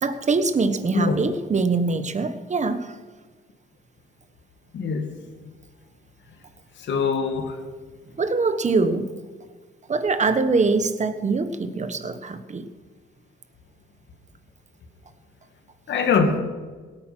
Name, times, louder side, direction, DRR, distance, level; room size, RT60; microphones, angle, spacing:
voice 1, 0.0-3.0 8.2-9.1 9.9-12.7, right 4 dB, 35° right, 10 dB, 1.3 m, -23 dB
voice 2, 4.7-5.1 6.9-7.5 15.9-16.4, left 5 dB, 65° left, 5 dB, 2.3 m, -22 dB
17.5 x 9.2 x 6.0 m, 1.4 s
cardioid pair, 90°, 20 cm